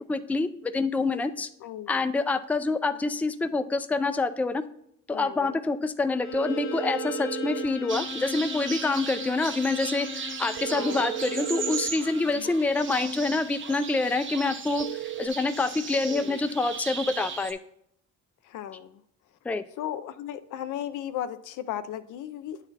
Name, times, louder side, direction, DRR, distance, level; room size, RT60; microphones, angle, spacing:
voice 1, 0.1-1.5 1.9-4.6 5.1-17.6 19.4-19.6, left 3 dB, 5° left, 10 dB, 0.3 m, -27 dB
voice 2, 1.6-2.0 5.1-5.6 10.7-11.1 12.3-12.6 16.1-16.4 18.4-19.0 19.8-22.7, left 11 dB, 85° left, 11 dB, 0.5 m, -36 dB
Bowed string instrument, 6.1-11.9, left 7 dB, 45° left, 0.8 m, -38 dB
sound 1, 6.3-7.7 10.6-12.0 14.8-15.3, right 15 dB, 65° right, 0.4 m, -34 dB
sound 2, 7.9-17.5, right 5 dB, 40° right, 0.8 m, -37 dB
8.8 x 4.2 x 4.0 m, 0.72 s
cardioid pair, 90°, 30 cm